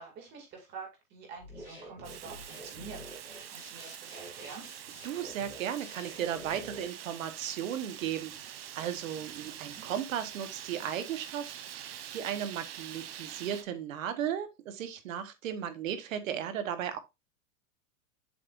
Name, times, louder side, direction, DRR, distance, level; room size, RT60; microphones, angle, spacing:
voice 1, 0.0-3.0 3.4-4.7 9.4-9.8, right 5 dB, 20° right, 2.2 m, -47 dB
sound 1, 1.4-6.8, equal, 5° right, 2.5 m, -48 dB
Fire, 2.0-13.6, right 10 dB, 40° right, 0.8 m, -45 dB
voice 2, 5.0-8.3 8.8-17.0, right 9 dB, 60° right, 1.3 m, -35 dB
7.6 x 5.4 x 2.5 m
supercardioid pair, 170°, 45 cm